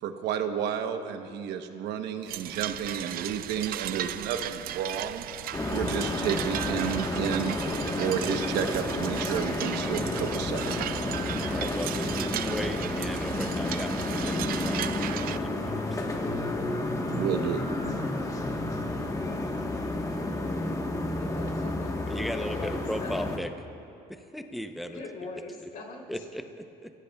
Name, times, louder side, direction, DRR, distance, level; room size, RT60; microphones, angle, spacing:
voice 1, 0.0-5.2 5.7-7.5 8.0-10.7 17.1-17.6, right 8 dB, 85° right, 7 dB, 1.0 m, -31 dB
sound 1, 2.3-15.4, right 13 dB, 60° right, 0.4 m, -36 dB
sound 2, 5.5-23.4, left 2 dB, 20° left, 1.3 m, -31 dB
voice 2, 11.4-16.3 22.1-23.5 24.1-25.0 26.1-26.9, equal, ahead, 6 dB, 0.7 m, -37 dB
voice 3, 21.1-21.9 22.4-23.3 24.9-26.2, left 2 dB, 55° left, -1 dB, 3.3 m, -41 dB
25.0 x 16.0 x 2.3 m, 2.7 s
cardioid pair, 110°, 17 cm